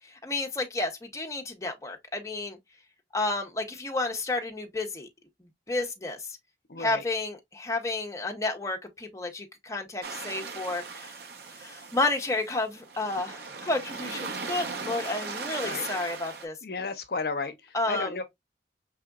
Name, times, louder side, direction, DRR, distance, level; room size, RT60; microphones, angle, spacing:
voice 1, 0.1-2.6 3.1-5.1 5.7-6.2 6.8-11.1 11.6-16.6 17.7-18.1, left 2 dB, 20° left, 0.8 m, -31 dB
voice 2, 6.7-7.1 15.6-15.9 16.6-18.2, left 4 dB, 60° left, 0.7 m, -33 dB
sound 1, 10.0-16.5, right 4 dB, 60° right, 0.9 m, -38 dB
5.0 x 3.5 x 2.3 m
head